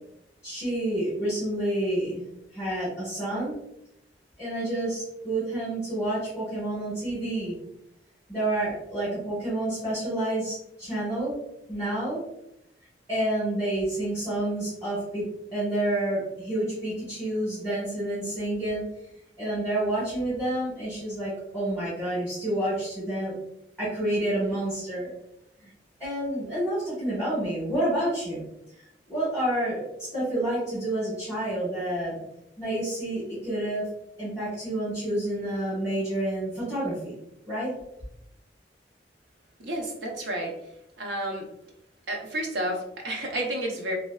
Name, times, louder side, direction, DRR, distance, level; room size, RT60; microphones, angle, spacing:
voice 1, 0.4-2.2 2.5-3.5 4.4-7.5 8.3-11.4 11.7-12.2 13.1-18.8 19.4-23.3 23.8-25.1 25.6-25.7 26.0-28.4 29.1-32.2 32.6-33.9 34.2-37.1 37.5-37.7, right 1 dB, 10° right, -11 dB, 1.4 m, -29 dB
voice 2, 39.6-40.5 41.0-41.5 42.1-44.0, right 1 dB, 85° right, 0 dB, 0.7 m, -31 dB
3.2 x 2.6 x 2.3 m, 0.80 s
head